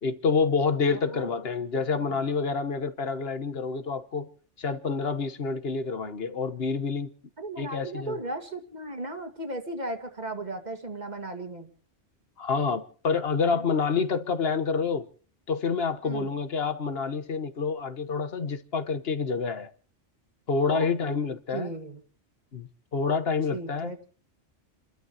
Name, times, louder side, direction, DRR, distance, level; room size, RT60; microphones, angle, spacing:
voice 1, 0.0-4.3 4.6-7.1 7.6-8.2 12.4-15.1 15.5-19.7 20.5-21.7 22.5-23.9, left 5 dB, 60° left, 1.4 m, -28 dB
voice 2, 0.9-1.3 7.4-11.7 13.5-13.6 16.0-16.3 20.7-20.9 21.5-22.0 23.5-24.0, right 2 dB, 35° right, 2.2 m, -36 dB
29.5 x 13.0 x 2.9 m
omnidirectional pair, 1.2 m